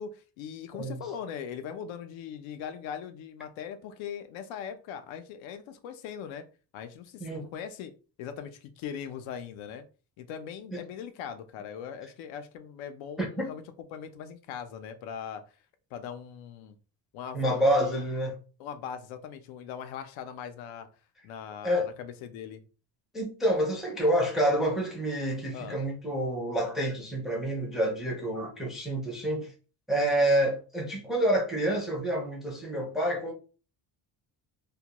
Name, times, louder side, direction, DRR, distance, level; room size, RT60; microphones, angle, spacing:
voice 1, 0.0-6.5 6.7-7.9 8.2-9.8 10.2-13.6 13.9-15.4 15.9-16.8 17.1-18.1 18.6-20.9 21.2-22.6 25.5-25.8, left 8 dB, 90° left, 0.6 m, -40 dB
voice 2, 13.2-13.5 17.3-18.4 21.6-21.9 23.1-29.5 29.9-33.3, right 1 dB, ahead, 0.4 m, -28 dB
2.2 x 2.2 x 2.8 m
cardioid pair, 150°, 46 cm